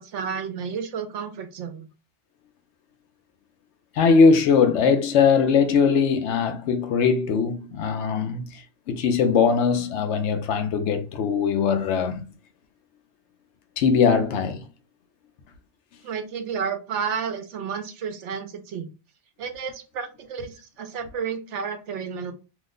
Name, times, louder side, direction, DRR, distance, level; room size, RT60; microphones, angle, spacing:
voice 1, 0.0-1.9 16.0-18.9 19.4-22.3, right 6 dB, 80° right, 0.9 m, -31 dB
voice 2, 4.0-8.6 8.9-12.3 13.8-14.6, left 5 dB, 75° left, 0.9 m, -20 dB
2.8 x 2.1 x 3.6 m
omnidirectional pair, 1.2 m